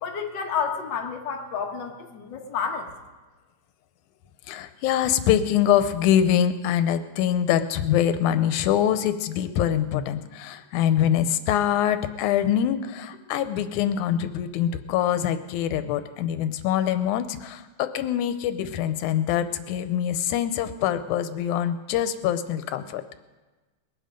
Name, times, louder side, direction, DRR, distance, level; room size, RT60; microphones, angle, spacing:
voice 1, 0.0-2.9, left 6 dB, 50° left, 1 dB, 1.6 m, -30 dB
voice 2, 4.5-23.0, left 10 dB, 90° left, 10 dB, 2.1 m, -24 dB
21.0 x 9.0 x 5.1 m, 1.2 s
omnidirectional pair, 3.4 m